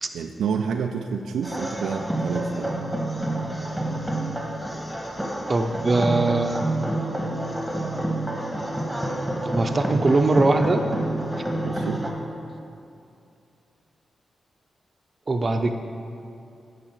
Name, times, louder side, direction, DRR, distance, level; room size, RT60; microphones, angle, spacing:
voice 1, 0.1-2.7 6.0-6.1 11.6-12.0, right 6 dB, 85° right, 4 dB, 0.3 m, -29 dB
sound 1, 1.4-12.1, right 1 dB, 5° right, 1.4 m, -28 dB
voice 2, 5.5-6.6 9.4-10.8 15.3-15.7, right 2 dB, 45° right, 6 dB, 0.6 m, -21 dB
9.9 x 3.6 x 6.1 m, 2.6 s
supercardioid pair, 45°, 0 cm